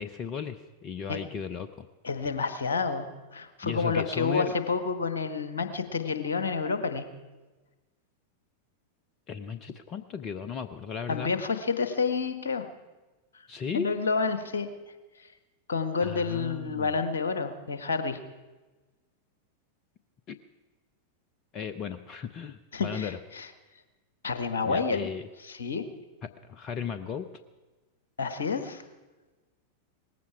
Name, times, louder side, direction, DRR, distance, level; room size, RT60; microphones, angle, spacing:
voice 1, 0.0-1.9 3.6-4.5 9.3-11.3 13.5-13.9 16.0-16.9 20.3-20.4 21.5-23.2 24.6-25.3 26.2-27.3, left 7 dB, 30° left, 11 dB, 0.7 m, -35 dB
voice 2, 2.0-7.1 11.1-12.7 13.7-14.7 15.2-15.3 15.7-18.2 22.7-23.5 24.2-25.1 25.4-25.9 28.2-28.8, left 4 dB, 70° left, 10 dB, 1.3 m, -29 dB
19.0 x 15.5 x 4.8 m, 1.2 s
figure-of-eight pair, 90°, 0 cm